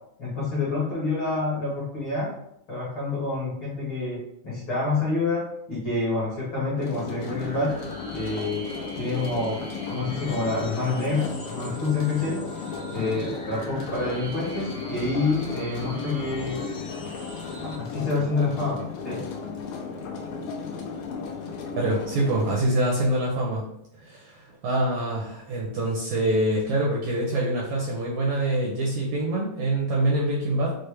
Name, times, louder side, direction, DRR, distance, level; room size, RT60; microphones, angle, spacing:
voice 1, 0.2-2.3 2.7-7.8 8.1-8.7 9.0-9.6 9.9-12.4 12.9-16.6 17.6-19.3, left 3 dB, 55° left, -8 dB, 1.4 m, -27 dB
sound 1, 6.8-22.5, left 5 dB, 85° left, 2.4 m, -35 dB
sound 2, 7.1-17.7, equal, 40° left, 0.7 m, -43 dB
voice 2, 21.8-23.7 24.0-30.8, right 1 dB, 75° right, -3 dB, 1.7 m, -25 dB
6.3 x 2.1 x 3.3 m, 0.75 s
omnidirectional pair, 3.9 m